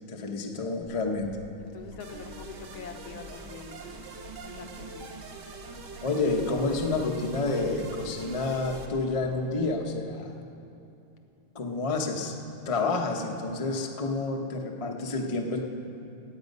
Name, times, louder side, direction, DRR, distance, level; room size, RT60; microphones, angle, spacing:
voice 1, 0.1-1.3 6.0-10.3 11.5-12.4 12.7-15.6, left 3 dB, 40° left, 1 dB, 0.5 m, -29 dB
Bird, 0.8-9.6, equal, 75° right, 2.6 m, -48 dB
voice 2, 1.6-3.9 4.4-5.2, left 6 dB, 80° left, 4 dB, 1.8 m, -45 dB
sound 1, 2.0-8.9, right 4 dB, 60° right, 1.7 m, -44 dB
17.5 x 8.5 x 5.4 m, 2.8 s
omnidirectional pair, 2.3 m